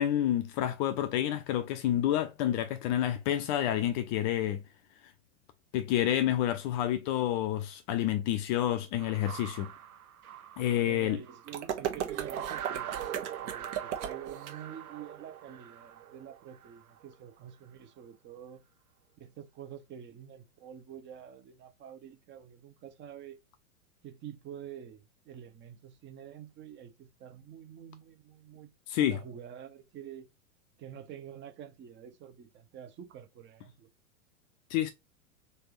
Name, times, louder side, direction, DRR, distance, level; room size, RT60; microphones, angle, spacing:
voice 1, 0.0-4.6 5.7-9.7 10.6-11.2 28.9-29.2 34.7-34.9, left 12 dB, 35° left, 0.5 m, -29 dB
sound 1, 9.0-11.7 12.1-17.2, right 10 dB, 85° right, 0.7 m, -42 dB
voice 2, 10.9-18.6 19.2-23.4 24.0-28.7 29.0-30.3 30.8-33.9, right 9 dB, 25° right, 0.8 m, -47 dB
sound 2, 11.5-14.5, right 9 dB, 50° right, 1.2 m, -36 dB
4.0 x 3.4 x 3.1 m
figure-of-eight pair, 100°, 42 cm